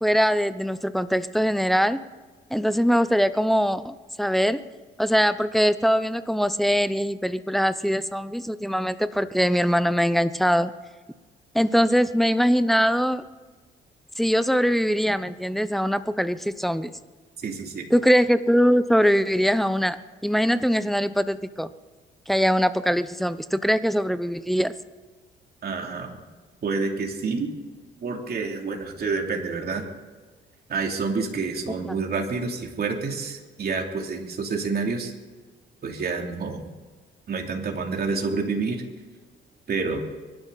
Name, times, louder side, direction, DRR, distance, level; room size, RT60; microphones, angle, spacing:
voice 1, 0.0-2.0 2.5-4.6 5.0-10.7 11.5-13.2 14.2-16.9 17.9-21.7 22.3-24.7 31.8-32.0, equal, ahead, 12 dB, 0.8 m, -22 dB
voice 2, 17.4-17.9 25.6-26.2 26.6-27.5 28.0-29.9 30.7-35.1 35.8-36.7 37.3-38.8 39.7-40.0, right 4 dB, 50° right, 1 dB, 3.0 m, -28 dB
24.5 x 12.0 x 4.1 m, 1.4 s
cardioid pair, 90°, 20 cm